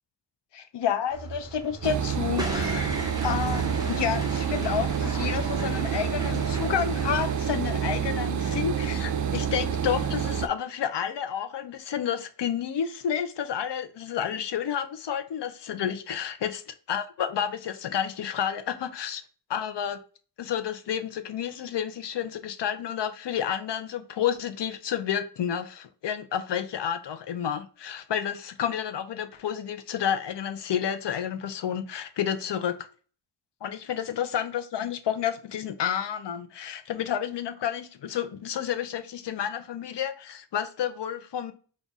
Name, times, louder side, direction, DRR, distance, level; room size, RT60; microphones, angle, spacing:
voice 1, 0.5-3.0 3.2-16.6 16.9-19.2 19.5-20.0 20.4-32.8 33.6-41.5, left 9 dB, 70° left, 0.6 m, -30 dB
sound 1, 1.1-7.4, right 1 dB, 10° right, 1.0 m, -36 dB
sound 2, 1.8-10.5, right 8 dB, 45° right, 0.5 m, -28 dB
4.0 x 2.5 x 3.5 m
cardioid pair, 55°, 43 cm